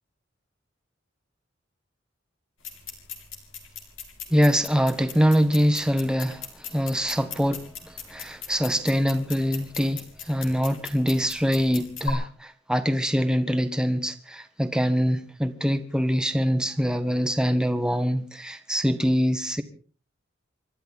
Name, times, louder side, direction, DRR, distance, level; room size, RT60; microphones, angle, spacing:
sound 1, 2.6-12.1, left 6 dB, 85° left, 3.7 m, -40 dB
voice 1, 4.3-19.6, equal, 5° right, 1.1 m, -24 dB
28.5 x 12.5 x 4.0 m
head